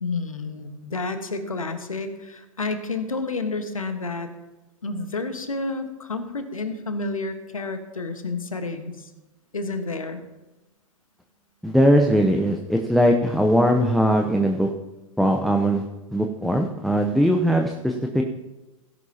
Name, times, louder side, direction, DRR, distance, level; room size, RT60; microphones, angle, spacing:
voice 1, 0.0-4.3 4.8-9.1 9.5-10.2, left 3 dB, 85° left, 8 dB, 1.4 m, -30 dB
voice 2, 11.6-14.7 15.2-15.9 16.1-18.2, equal, ahead, 3 dB, 0.8 m, -20 dB
17.0 x 11.0 x 2.9 m, 1.1 s
figure-of-eight pair, 100°, 17 cm